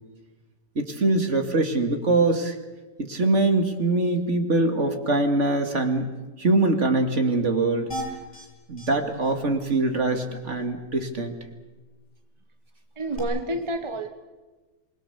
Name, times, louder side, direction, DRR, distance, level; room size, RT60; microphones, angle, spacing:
voice 1, 0.8-2.6 3.0-7.9 8.7-11.4, right 2 dB, 50° right, 5 dB, 2.6 m, -23 dB
sound 1, 7.9-8.5 8.8-8.9 9.2-9.3 9.7-9.8 13.1-13.2, right 1 dB, 30° left, 7.6 m, -34 dB
voice 2, 13.0-14.1, right 2 dB, 20° right, 7 dB, 1.4 m, -29 dB
27.5 x 22.0 x 7.0 m, 1.2 s
omnidirectional pair, 1.6 m